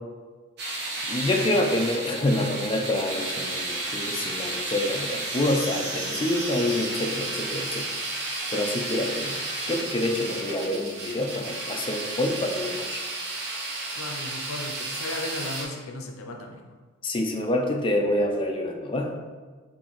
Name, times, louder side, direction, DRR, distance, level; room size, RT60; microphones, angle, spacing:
sound 1, 0.6-15.6, right 2 dB, 55° right, 0.8 m, -32 dB
voice 1, 1.1-7.8 8.5-13.0 17.0-19.1, left 1 dB, 25° left, 2 dB, 0.4 m, -27 dB
voice 2, 14.0-16.8, left 2 dB, 85° left, 3 dB, 0.6 m, -36 dB
4.4 x 3.4 x 3.0 m, 1.4 s
head